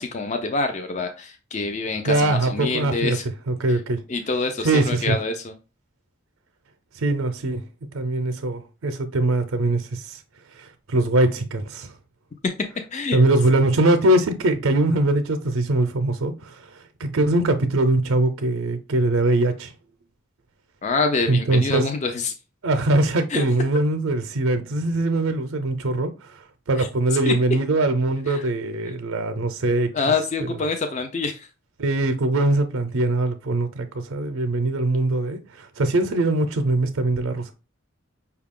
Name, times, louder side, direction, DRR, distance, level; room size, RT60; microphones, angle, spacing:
voice 1, 0.0-3.2 3.7-3.8 4.1-5.5 12.9-13.2 20.8-22.3 23.3-23.4 26.8-26.9 27.3-27.4 28.3-28.5 28.9-29.0 29.9-31.5, left 3 dB, 35° left, 0.4 m, -26 dB
voice 2, 2.1-3.2 3.5-4.0 4.6-5.2 7.0-7.6 7.9-10.2 10.6-11.9 13.1-16.7 17.0-19.7 21.3-21.8 22.6-26.4 26.7-29.9 31.8-37.5, right 2 dB, 85° right, 0.5 m, -22 dB
5.5 x 2.3 x 3.5 m
head